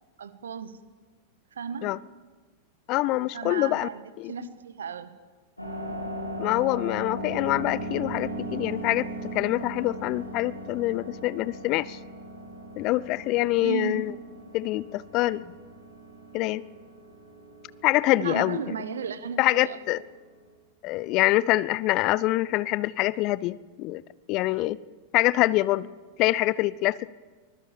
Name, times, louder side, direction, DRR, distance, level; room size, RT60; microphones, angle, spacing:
voice 1, 0.2-0.7 1.5-1.9 3.3-4.0 4.3-5.1 13.6-14.1 18.2-19.8, right 6 dB, 65° right, 13 dB, 1.6 m, -34 dB
voice 2, 2.9-3.9 4.2-4.3 6.4-9.1 9.3-12.0 12.8-14.1 14.5-15.4 16.3-16.6 17.8-18.6 19.4-20.0 20.8-24.0 24.3-24.8 25.1-25.9 26.2-27.1, left 17 dB, 40° left, 21 dB, 0.6 m, -25 dB
sound 1, 5.6-20.5, right 1 dB, 85° left, 3.7 m, -38 dB
23.5 x 21.0 x 7.2 m, 1.3 s
figure-of-eight pair, 90°, 0 cm